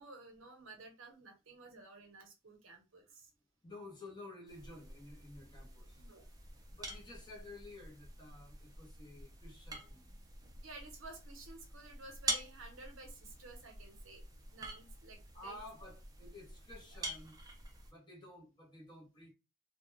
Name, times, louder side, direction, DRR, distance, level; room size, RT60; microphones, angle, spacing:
voice 1, 0.0-3.3 6.0-6.3 10.6-14.2 14.5-15.6, right 3 dB, 70° right, 0.8 m, -53 dB
voice 2, 3.6-10.4 14.5-14.7 15.3-17.4 17.9-19.3, left 2 dB, 20° left, 0.9 m, -53 dB
sound 1, 4.5-17.9, right 2 dB, 20° right, 0.5 m, -46 dB
2.2 x 2.2 x 3.1 m
head